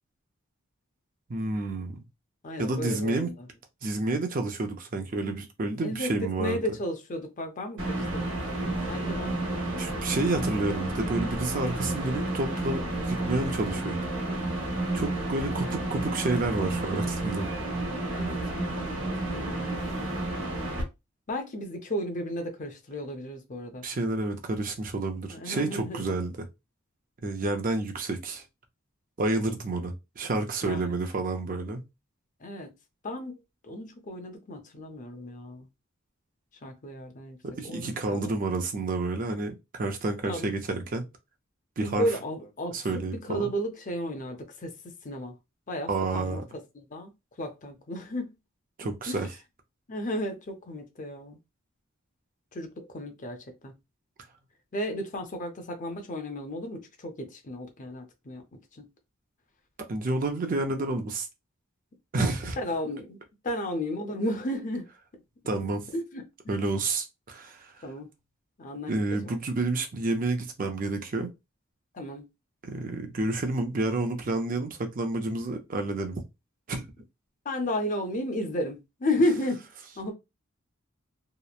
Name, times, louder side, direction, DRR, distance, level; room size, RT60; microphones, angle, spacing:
voice 1, 1.3-2.0 2.6-3.3 3.8-6.6 9.8-14.0 14.3-14.4 14.9-17.5 23.8-26.3 27.2-28.4 29.2-31.8 37.4-41.0 41.8-42.1 42.7-43.4 45.9-46.4 48.8-49.3 59.9-61.3 62.1-62.6 65.5-65.8 66.5-67.7 68.9-71.3 72.7-76.2 76.7-76.8, right 2 dB, 40° right, 0.5 m, -29 dB
voice 2, 2.4-3.5 5.8-6.1 6.4-9.3 10.1-10.2 18.1-20.1 21.3-23.9 25.3-26.2 30.6-30.8 32.4-32.7 33.0-33.4 33.6-35.7 36.6-37.4 37.6-38.3 40.2-40.5 41.8-44.7 45.0-45.3 45.7-47.1 47.4-48.3 48.8-49.2 49.9-51.4 52.5-53.7 54.7-58.9 62.6-63.2 63.4-64.9 65.9-66.7 67.8-68.1 68.6-68.9 69.2-69.4 71.9-72.3 77.4-79.7 80.0-80.1, left 1 dB, 40° left, 0.6 m, -33 dB
sound 1, 7.8-20.8, right 2 dB, 65° right, 1.0 m, -31 dB
2.9 x 2.1 x 2.3 m
head